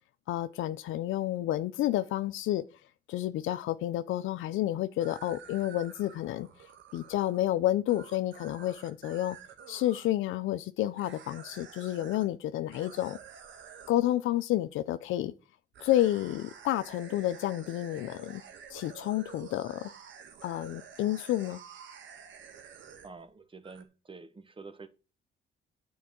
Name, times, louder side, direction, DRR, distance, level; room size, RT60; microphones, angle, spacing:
voice 1, 0.3-2.6 3.1-6.5 6.9-9.4 9.7-13.2 13.9-15.3 15.8-18.4 18.7-19.9 20.4-21.6, left 14 dB, 85° left, 0.6 m, -30 dB
sound 1, 5.0-10.1 11.0-12.3 12.7-14.0 15.7-23.3 23.6-23.8, right 7 dB, 70° right, 1.8 m, -50 dB
voice 2, 23.0-24.9, right 4 dB, 25° right, 1.4 m, -48 dB
9.3 x 4.8 x 7.4 m
cardioid pair, 90°, 20 cm